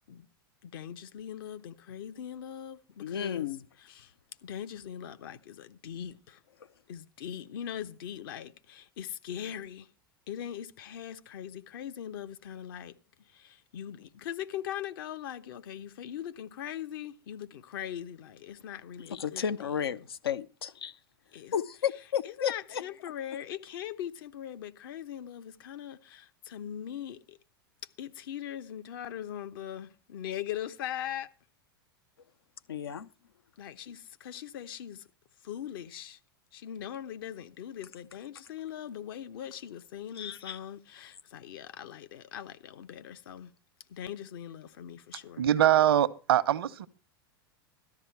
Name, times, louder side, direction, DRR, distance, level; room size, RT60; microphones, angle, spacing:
voice 1, 0.6-3.5 3.8-4.1 4.4-6.4 6.9-9.9 10.3-12.9 13.2-19.4 21.3-21.5 22.2-27.4 28.0-31.3 33.6-35.1 35.4-36.2 36.5-43.5 43.9-45.5, left 10 dB, 70° left, 0.9 m, -41 dB
voice 2, 3.0-3.6 19.1-21.0 21.5-22.8 32.7-33.1 40.2-40.6, left 8 dB, 85° left, 0.7 m, -33 dB
voice 3, 45.4-46.9, right 11 dB, 75° right, 0.8 m, -23 dB
13.0 x 10.5 x 4.5 m
hypercardioid pair, 100°, 12 cm